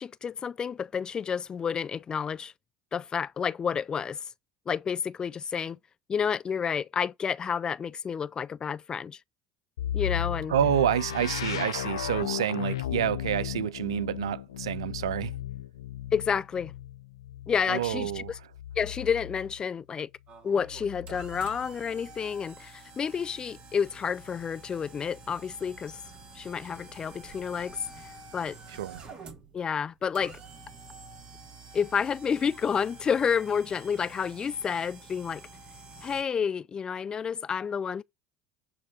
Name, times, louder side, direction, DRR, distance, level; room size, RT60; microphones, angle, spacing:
voice 1, 0.0-2.5 2.9-4.3 4.7-5.8 6.1-9.2 9.9-10.5 16.1-16.7 17.5-18.2 18.8-20.1 20.4-26.0 26.3-27.9 28.3-28.6 29.5-30.4 31.7-35.5 36.0-38.0, left 7 dB, 30° left, 0.5 m, -30 dB
sound 1, 9.8-19.6 20.6-21.6, left 11 dB, 85° left, 0.4 m, -35 dB
voice 2, 10.5-15.3 17.7-18.3 28.7-29.0, right 11 dB, 85° right, 0.4 m, -28 dB
sound 2, 20.3-36.2, right 3 dB, 45° right, 2.9 m, -48 dB
8.9 x 3.5 x 6.4 m
hypercardioid pair, 75°, 3 cm